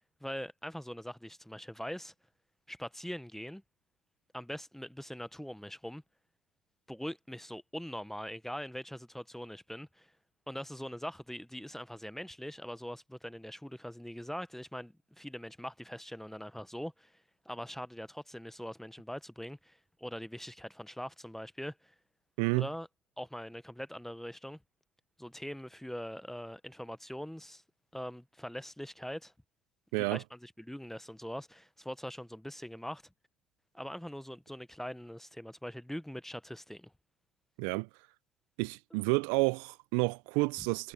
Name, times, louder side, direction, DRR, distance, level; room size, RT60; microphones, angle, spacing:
voice 1, 0.2-2.1 2.7-3.6 4.3-6.0 6.9-10.1 10.5-21.9 22.6-22.9 23.2-24.6 25.2-27.6 27.9-29.3 29.9-33.0 33.7-36.9, equal, ahead, 0.9 m, -42 dB
voice 2, 29.9-30.2 37.6-37.9 38.6-40.9, right 28 dB, 75° right, 0.5 m, -30 dB
supercardioid pair, 90°, 14 cm